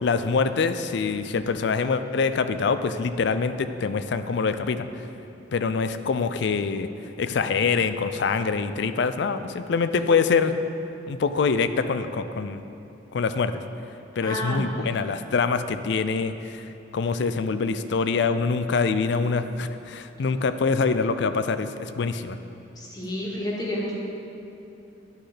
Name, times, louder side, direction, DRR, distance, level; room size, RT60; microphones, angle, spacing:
voice 1, 0.0-4.9 5.5-6.9 7.2-10.6 11.1-12.6 13.1-13.6 14.2-16.6 16.9-22.4, left 5 dB, 65° left, 11 dB, 0.4 m, -25 dB
voice 2, 14.2-14.9 22.8-24.0, equal, 20° left, -4 dB, 1.6 m, -31 dB
10.5 x 5.9 x 5.0 m, 2.8 s
head